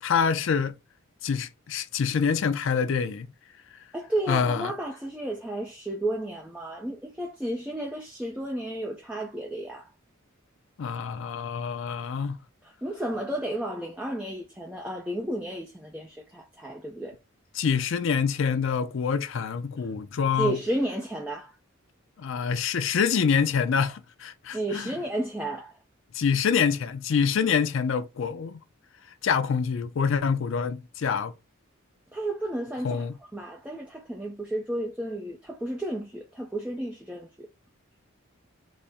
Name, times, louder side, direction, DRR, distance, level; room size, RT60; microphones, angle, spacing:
voice 1, 0.0-0.7 1.2-3.3 4.3-4.7 10.8-12.4 17.5-20.6 22.2-24.9 26.1-28.6 29.2-31.3 32.8-33.2, left 6 dB, 60° left, 0.4 m, -26 dB
voice 2, 3.9-9.9 12.6-17.2 20.4-21.5 24.5-25.8 32.1-33.1 33.3-37.5, right 1 dB, 5° right, 0.4 m, -32 dB
4.1 x 2.0 x 3.4 m
head